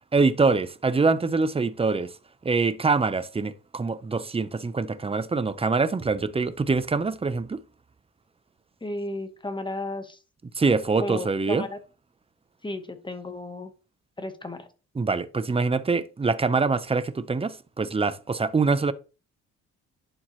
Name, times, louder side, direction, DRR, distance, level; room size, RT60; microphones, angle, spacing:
voice 1, 0.1-2.2 2.4-7.6 10.5-11.7 15.0-18.9, right 4 dB, 20° right, 0.6 m, -24 dB
voice 2, 8.8-10.2 11.0-11.8 12.6-13.7 14.2-14.7, left 2 dB, 15° left, 1.3 m, -34 dB
11.0 x 4.5 x 3.1 m
cardioid pair, 90°, 30 cm